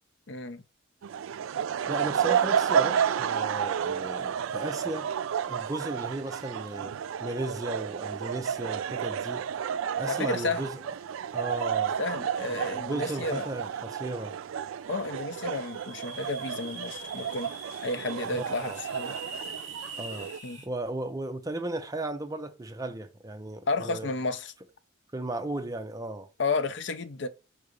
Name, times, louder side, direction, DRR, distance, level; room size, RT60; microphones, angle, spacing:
voice 1, 0.3-0.6 10.1-10.6 12.0-13.4 14.9-17.5 17.8-19.1 20.4-20.6 23.7-24.5 26.4-27.3, left 3 dB, 65° left, 0.6 m, -32 dB
sound 1, 1.0-20.4, right 8 dB, 85° right, 0.3 m, -31 dB
voice 2, 1.9-5.1 5.5-9.4 10.0-10.8 11.3-11.9 12.5-14.4 18.3-18.8 20.0-20.3 20.6-24.1 25.1-26.3, right 1 dB, 15° right, 0.5 m, -35 dB
sound 2, 15.3-20.7, right 3 dB, 35° right, 1.3 m, -43 dB
4.8 x 3.9 x 5.0 m
head